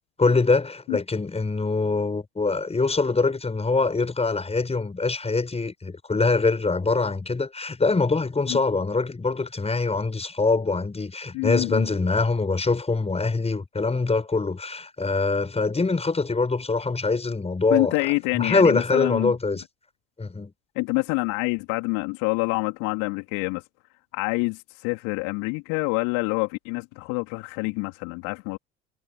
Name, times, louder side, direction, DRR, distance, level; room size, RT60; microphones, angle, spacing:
voice 1, 0.2-18.0 18.3-19.6 20.2-20.5, left 3 dB, 15° left, 7.4 m, -24 dB
voice 2, 11.3-11.9 17.7-19.3 20.8-23.6 24.1-28.6, left 29 dB, 60° left, 4.0 m, -26 dB
figure-of-eight pair, 65°, 35 cm